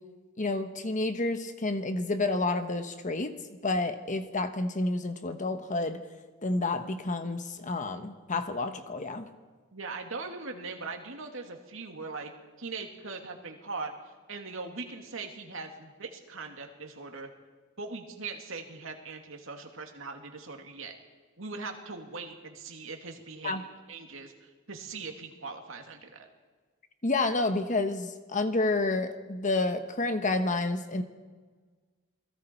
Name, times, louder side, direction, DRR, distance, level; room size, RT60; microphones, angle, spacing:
voice 1, 0.4-3.3 3.6-6.0 6.4-9.3 23.4-23.6 27.0-31.0, left 2 dB, 40° left, 8 dB, 1.3 m, -29 dB
voice 2, 9.7-12.3 12.6-13.9 14.3-17.3 17.8-21.0 21.4-26.3, right 4 dB, 70° right, 3 dB, 2.6 m, -40 dB
28.0 x 20.5 x 4.6 m, 1.4 s
head